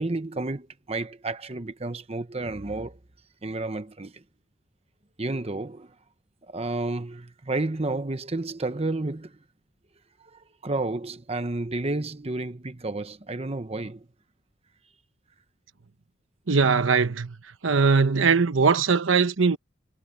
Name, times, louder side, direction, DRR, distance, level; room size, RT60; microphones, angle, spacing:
voice 1, 0.0-3.0 3.4-4.2 5.2-5.9 6.5-9.3 10.6-14.0, right 2 dB, 30° right, 1.0 m, -31 dB
voice 2, 16.5-17.4 17.6-19.6, right 5 dB, 75° right, 1.0 m, -20 dB
head